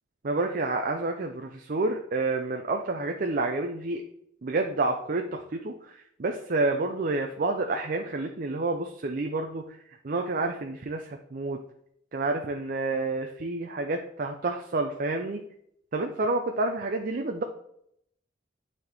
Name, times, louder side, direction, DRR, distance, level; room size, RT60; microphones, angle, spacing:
voice 1, 0.2-4.1 4.4-9.7 10.0-11.6 12.1-15.4 15.9-17.4, right 2 dB, 50° right, 4 dB, 0.5 m, -29 dB
10.5 x 4.2 x 3.5 m, 0.72 s
head